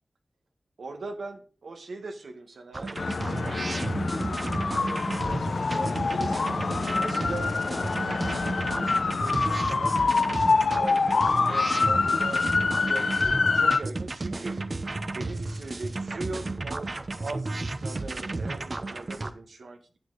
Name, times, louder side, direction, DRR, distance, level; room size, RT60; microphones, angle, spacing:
voice 1, 0.8-6.4 6.9-9.9 10.2-10.4 10.7-14.6 15.1-20.0, right 3 dB, 90° right, 5 dB, 1.6 m, -41 dB
sound 1, 2.7-19.3, right 2 dB, 45° right, 0.9 m, -33 dB
sound 2, 3.0-13.8, left 4 dB, 70° left, 0.6 m, -26 dB
10.0 x 7.9 x 4.1 m, 0.37 s
wide cardioid pair, 95°, 0 cm